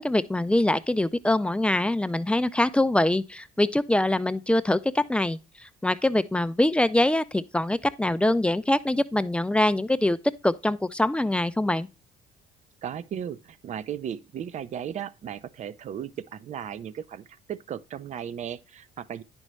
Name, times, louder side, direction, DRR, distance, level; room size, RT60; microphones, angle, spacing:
voice 1, 0.0-10.2 10.4-11.9, left 1 dB, 5° left, 0.4 m, -24 dB
voice 2, 12.8-19.2, right 9 dB, 45° right, 0.5 m, -36 dB
9.9 x 5.4 x 3.1 m
cardioid pair, 110°, 17 cm